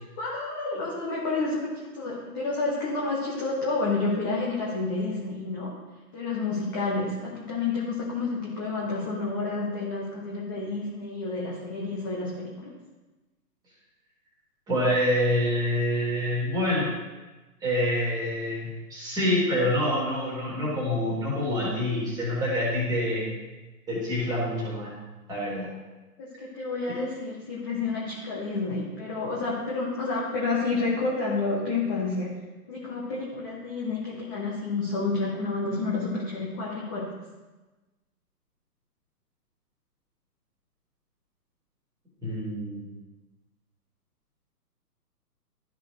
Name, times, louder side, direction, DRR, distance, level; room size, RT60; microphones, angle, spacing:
voice 1, 0.2-5.7 6.1-12.7 26.2-32.3 32.7-37.1, left 3 dB, 15° left, -5 dB, 0.6 m, -30 dB
voice 2, 14.7-16.9 17.6-23.2 23.9-24.9 25.3-25.7 42.2-42.9, left 1 dB, 10° right, -5 dB, 2.5 m, -26 dB
12.5 x 5.0 x 3.1 m, 1.2 s
figure-of-eight pair, 135°, 48 cm